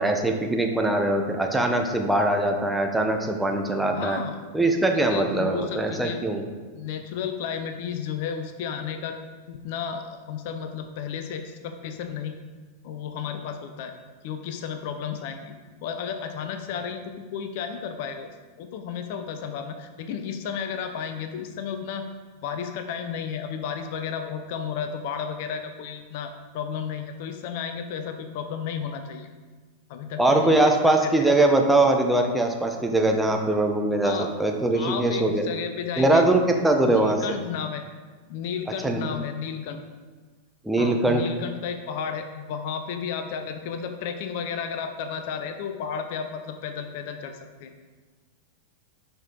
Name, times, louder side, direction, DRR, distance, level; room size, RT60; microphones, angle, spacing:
voice 1, 0.0-4.2 4.5-6.4 30.2-35.4 36.0-37.4 38.8-39.0 40.6-41.3, right 2 dB, 5° right, 2 dB, 1.0 m, -22 dB
voice 2, 3.9-4.4 4.9-6.2 6.7-9.2 9.5-12.4 12.8-13.9 14.2-15.6 15.8-18.3 18.6-22.1 22.4-29.3 29.9-30.6 31.0-31.3 34.0-34.3 34.7-36.3 36.8-37.8 38.3-39.8 40.8-47.7, left 7 dB, 50° left, 7 dB, 0.8 m, -33 dB
11.5 x 5.3 x 4.0 m, 1.4 s
figure-of-eight pair, 90°, 0 cm